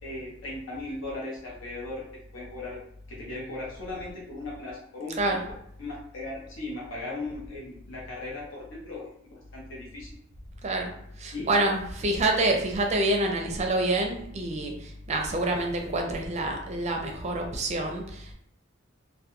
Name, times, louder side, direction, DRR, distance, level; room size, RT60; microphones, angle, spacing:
voice 1, 0.0-2.0 2.3-2.8 3.1-5.2 5.8-10.2 11.3-11.7, left 2 dB, 75° left, -5 dB, 0.8 m, -37 dB
voice 2, 10.6-18.3, right 2 dB, 35° right, 2 dB, 0.4 m, -27 dB
2.2 x 2.2 x 2.9 m, 0.71 s
head